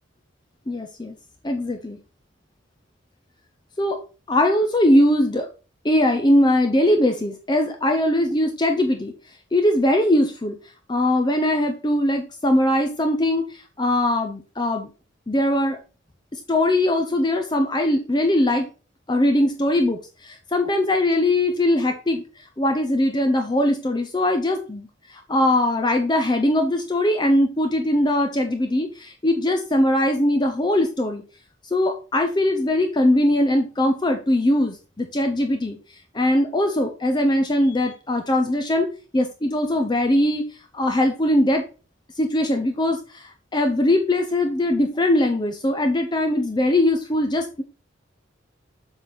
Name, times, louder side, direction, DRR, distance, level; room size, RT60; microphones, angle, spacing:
voice 1, 0.7-1.1 1.4-2.0 3.8-4.0 4.3-5.5 5.8-9.1 9.5-10.6 10.9-14.9 15.3-15.8 16.5-18.7 19.1-22.2 22.6-24.9 25.1-31.2 31.7-35.8 36.1-38.9 39.1-40.4 40.7-41.6 42.2-47.6, left 1 dB, 20° left, 5 dB, 0.6 m, -21 dB
7.5 x 3.9 x 4.1 m, 0.34 s
head